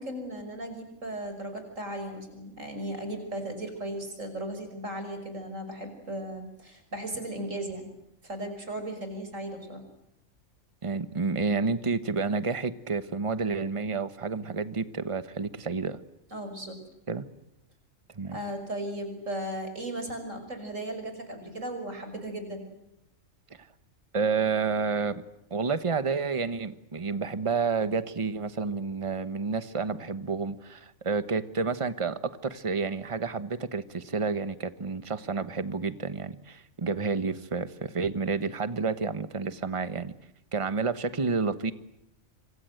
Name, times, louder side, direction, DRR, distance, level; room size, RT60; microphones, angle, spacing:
voice 1, 0.0-7.9 8.2-9.8 16.3-16.8 18.3-22.6, right 1 dB, 65° right, 7 dB, 6.3 m, -36 dB
voice 2, 10.8-16.0 17.1-17.2 18.1-18.4 24.1-25.1 25.5-40.1 40.5-41.7, right 4 dB, 25° right, 13 dB, 1.2 m, -30 dB
26.5 x 26.0 x 7.9 m, 0.85 s
omnidirectional pair, 1.4 m